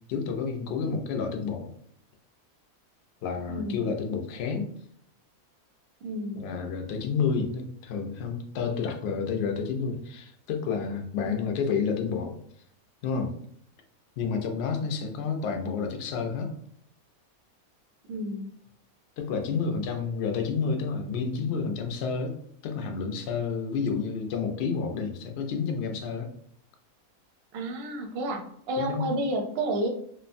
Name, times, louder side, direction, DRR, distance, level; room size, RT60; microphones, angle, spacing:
voice 1, 0.1-1.7 3.2-4.7 6.3-12.3 13.0-13.3 14.2-16.5 19.2-22.4 22.6-26.3 28.8-29.1, left 5 dB, 65° left, 4 dB, 0.6 m, -30 dB
voice 2, 3.5-3.9 6.0-6.4 11.2-11.5 18.1-18.5 27.5-29.9, right 1 dB, 60° right, 2 dB, 0.6 m, -31 dB
3.0 x 2.1 x 2.5 m, 0.68 s
omnidirectional pair, 1.5 m